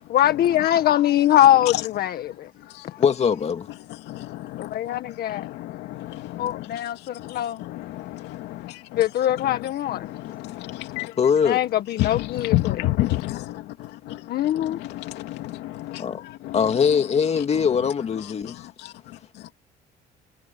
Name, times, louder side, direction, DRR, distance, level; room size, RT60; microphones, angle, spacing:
voice 1, 0.1-2.5 4.6-5.5 6.4-7.6 9.0-10.1 11.4-12.8 14.3-14.8, left 12 dB, 65° left, 1.8 m, -22 dB
voice 2, 3.0-3.7 11.2-11.6 16.0-16.2 16.5-18.6, left 7 dB, 40° left, 2.4 m, -21 dB
voice 3, 4.0-4.8 5.1-6.8 7.2-9.0 9.4-9.6 9.9-11.2 12.0-16.0 16.4-16.6 18.8-19.5, left 16 dB, 85° left, 2.9 m, -31 dB
cardioid pair, 110°, 17 cm